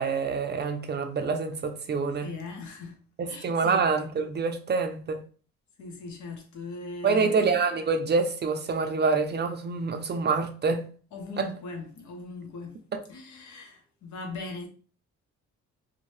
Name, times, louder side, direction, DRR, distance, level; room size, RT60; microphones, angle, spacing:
voice 1, 0.0-2.3 3.2-5.2 7.0-10.8 11.4-11.5, right 4 dB, 35° right, 0.4 m, -26 dB
voice 2, 2.2-3.0 3.3-3.9 5.8-7.6 11.1-12.8 13.1-14.7, left 3 dB, 70° left, 0.8 m, -39 dB
2.6 x 2.1 x 3.1 m
cardioid pair, 90°, 30 cm